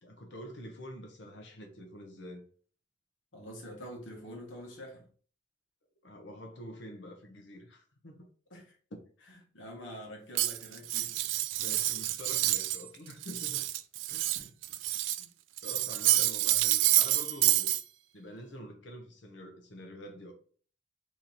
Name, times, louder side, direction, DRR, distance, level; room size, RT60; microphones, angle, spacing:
voice 1, 0.0-2.4 6.0-8.3 8.9-9.0 11.6-13.6 14.1-14.4 15.6-17.8 18.1-20.3, equal, 65° left, 0.8 m, -46 dB
voice 2, 3.3-5.1 8.5-8.7 9.3-11.3 14.3-14.8 15.1-15.3 15.9-16.2, equal, 85° left, 1.3 m, -47 dB
Cutlery silverware, 10.4-12.8 13.1-15.3 15.6-17.8, right 15 dB, 75° right, 0.3 m, -28 dB
3.0 x 2.9 x 3.9 m
head